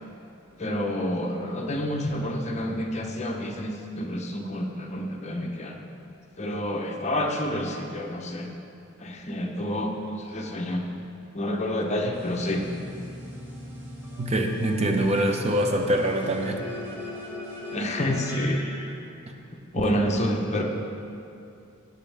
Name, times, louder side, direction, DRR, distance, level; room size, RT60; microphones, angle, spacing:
voice 1, 0.6-5.8 6.4-8.5 9.0-9.9 10.3-10.9 11.3-12.7 16.9-17.0 17.7-18.6 19.7-20.6, left 1 dB, 35° left, 2 dB, 0.9 m, -28 dB
sound 1, 12.1-18.8, left 1 dB, 10° right, 1.9 m, -39 dB
voice 2, 14.2-16.6 19.7-19.9, right 1 dB, 30° right, 3 dB, 0.7 m, -24 dB
17.0 x 6.4 x 3.4 m, 2.7 s
head